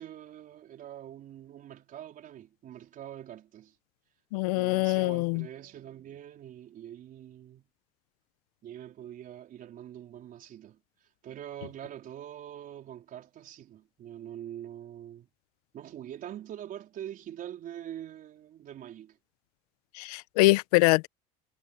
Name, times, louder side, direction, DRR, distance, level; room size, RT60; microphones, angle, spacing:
voice 1, 0.0-3.8 4.5-7.7 8.6-15.3 15.7-19.2, right 11 dB, 45° right, 4.1 m, -44 dB
voice 2, 4.3-5.4 20.0-21.1, left 21 dB, 85° left, 1.0 m, -24 dB
supercardioid pair, 115°, 19 cm